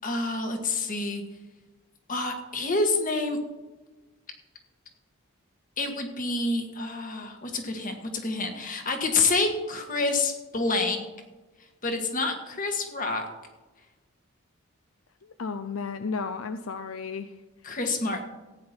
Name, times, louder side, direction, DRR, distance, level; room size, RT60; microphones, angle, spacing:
voice 1, 0.0-1.2 2.1-3.4 5.8-11.0 11.8-13.2 17.6-18.2, left 3 dB, 40° left, 4 dB, 1.7 m, -28 dB
voice 2, 15.2-17.3, left 5 dB, 70° left, 9 dB, 0.6 m, -33 dB
15.0 x 9.5 x 4.4 m, 1.2 s
head